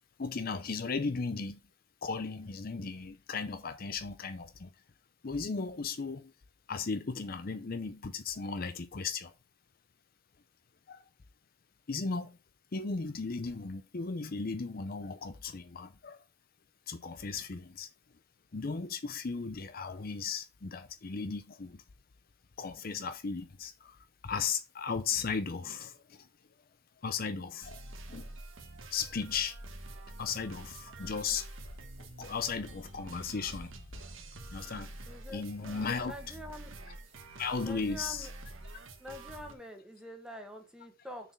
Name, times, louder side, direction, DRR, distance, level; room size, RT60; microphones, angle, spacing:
voice 1, 0.2-1.6 2.0-4.7 5.2-6.3 6.7-9.3 10.9-11.0 11.9-12.4 12.7-16.2 16.9-17.9 18.5-21.8 22.6-24.0 24.2-26.3 27.0-27.8 28.1-28.3 28.9-29.6 30.2-31.5 32.0-33.7 34.5-34.9 35.3-36.4 37.4-38.3, left 5 dB, 45° left, 0.6 m, -36 dB
sound 1, 27.6-39.5, right 2 dB, 80° right, 1.4 m, -47 dB
voice 2, 35.1-36.7 37.6-38.3 39.0-41.3, left 1 dB, 5° right, 1.5 m, -46 dB
6.7 x 4.4 x 5.9 m
head